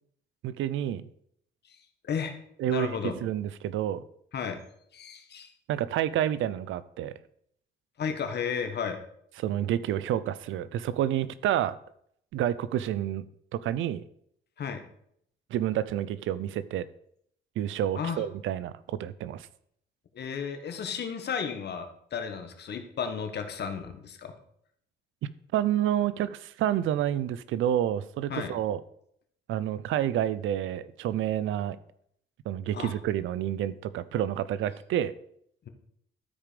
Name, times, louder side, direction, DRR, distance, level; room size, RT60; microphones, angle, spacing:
voice 1, 0.4-1.1 2.6-2.9 3.2-4.0 5.7-7.1 9.4-11.8 12.3-13.2 13.5-14.0 15.5-16.9 17.6-19.5 25.2-28.8 29.5-31.8 32.5-35.1, right 11 dB, 80° right, 16 dB, 0.6 m, -29 dB
voice 2, 2.7-3.2 4.3-4.6 4.9-5.5 8.0-9.0 14.6-14.8 18.0-18.2 20.1-24.3 28.3-28.5 32.7-32.9, left 6 dB, 55° left, 7 dB, 1.4 m, -33 dB
12.5 x 5.0 x 5.1 m, 0.69 s
cardioid pair, 90°, 20 cm